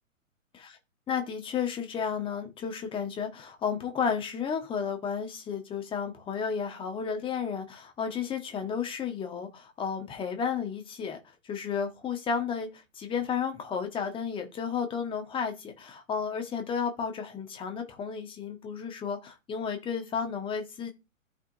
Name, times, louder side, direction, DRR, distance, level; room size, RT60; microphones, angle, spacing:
voice 1, 1.1-11.2 11.4-20.9, left 6 dB, 10° left, 1.4 m, -32 dB
14.0 x 5.5 x 2.7 m
figure-of-eight pair, 125°, 41 cm